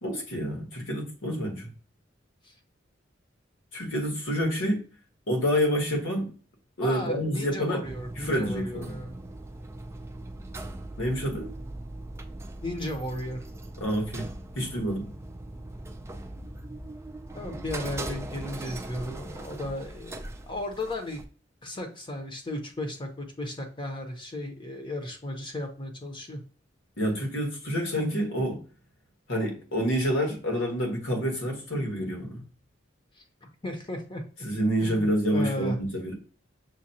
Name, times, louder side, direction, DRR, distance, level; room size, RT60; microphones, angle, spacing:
voice 1, 0.0-1.7 3.7-4.8 5.3-6.3 6.8-7.8 8.2-9.0 11.0-11.5 13.8-15.1 27.0-28.6 29.3-32.4 34.4-36.1, equal, 85° left, 1.6 m, -28 dB
voice 2, 6.8-9.1 12.6-13.4 17.3-20.2 20.5-21.2 21.6-26.4 33.2-34.2 34.8-35.0 35.3-35.8, left 1 dB, 25° left, 0.8 m, -35 dB
sound 1, 7.8-21.2, right 1 dB, 15° right, 0.4 m, -40 dB
6.3 x 2.3 x 2.7 m
head